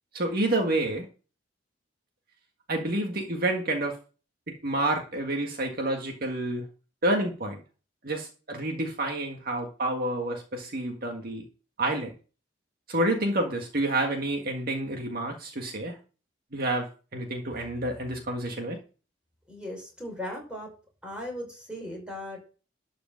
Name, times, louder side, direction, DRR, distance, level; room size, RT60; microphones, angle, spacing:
voice 1, 0.1-1.1 2.7-4.0 4.5-6.7 7.0-7.6 8.0-11.4 11.8-12.1 12.9-16.0 16.5-18.8, right 1 dB, 50° right, 2 dB, 1.7 m, -29 dB
voice 2, 19.5-20.7 21.0-22.5, left 1 dB, 5° right, -1 dB, 5.6 m, -38 dB
12.5 x 5.1 x 7.5 m, 0.36 s
head